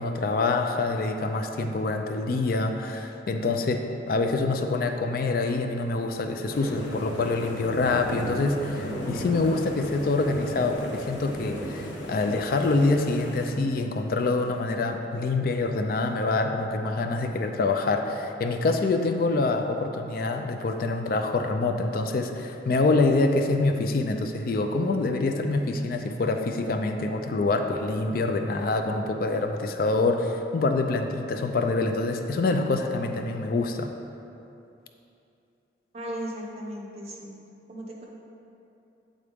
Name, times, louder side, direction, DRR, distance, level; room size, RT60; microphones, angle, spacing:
voice 1, 0.0-33.9, left 3 dB, 50° left, 5 dB, 0.3 m, -26 dB
sound 1, 6.5-13.5, equal, 90° left, 0.8 m, -36 dB
voice 2, 35.9-37.4 37.7-38.0, equal, 35° right, -2 dB, 0.8 m, -36 dB
8.3 x 3.8 x 3.4 m, 2.8 s
head